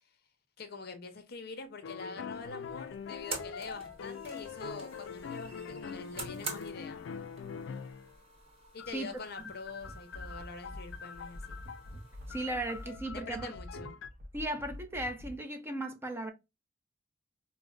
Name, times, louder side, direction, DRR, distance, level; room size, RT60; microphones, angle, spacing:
voice 1, 0.6-7.1 8.7-11.6 13.1-13.9, left 4 dB, 55° left, 0.7 m, -45 dB
sound 1, 1.8-8.2 8.8-14.1, left 6 dB, 75° left, 0.3 m, -44 dB
sound 2, 2.3-12.9, right 3 dB, 30° right, 1.0 m, -48 dB
sound 3, 9.8-15.4, left 1 dB, 55° right, 0.6 m, -47 dB
voice 2, 12.3-13.5 14.3-16.3, right 1 dB, 15° right, 0.5 m, -36 dB
4.9 x 2.1 x 2.4 m
head